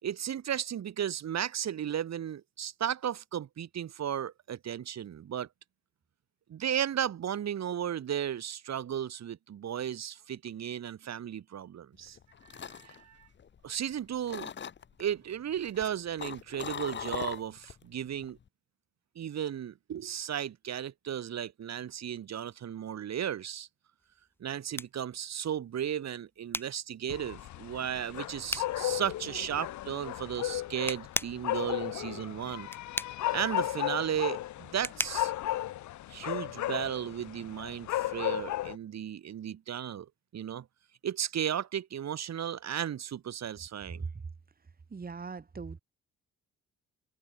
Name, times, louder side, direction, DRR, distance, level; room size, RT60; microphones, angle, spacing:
voice 1, 0.0-5.5 6.5-12.2 12.5-13.3 13.6-14.5 15.0-18.4 19.2-23.7 24.4-32.7 33.3-35.3 36.1-40.1 40.3-40.7 41.0-44.0, right 9 dB, 60° right, 4.1 m, -35 dB
sound 1, 12.1-13.9 14.3-15.0 15.6-17.8 18.1-18.5, left 7 dB, 40° left, 1.0 m, -40 dB
sound 2, 24.0-36.5, left 1 dB, 5° left, 1.3 m, -41 dB
sound 3, 27.1-38.8, left 14 dB, 70° left, 1.0 m, -35 dB
voice 2, 44.9-45.8, right 5 dB, 30° right, 3.0 m, -39 dB
cardioid pair, 90°, 30 cm